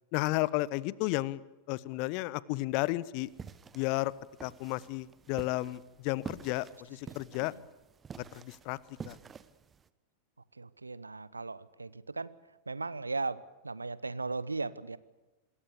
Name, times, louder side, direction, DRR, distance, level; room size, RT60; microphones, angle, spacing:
voice 1, 0.1-1.4 1.7-3.3 3.7-4.1 4.4-7.5 8.2-8.8 9.0-9.2, left 19 dB, 45° left, 21 dB, 0.8 m, -33 dB
sound 1, 3.2-9.9, right 6 dB, 20° right, 1.1 m, -48 dB
voice 2, 10.6-12.3 12.7-15.0, right 3 dB, 80° right, 19 dB, 0.9 m, -37 dB
26.5 x 21.5 x 6.9 m, 1.1 s
figure-of-eight pair, 90°, 0 cm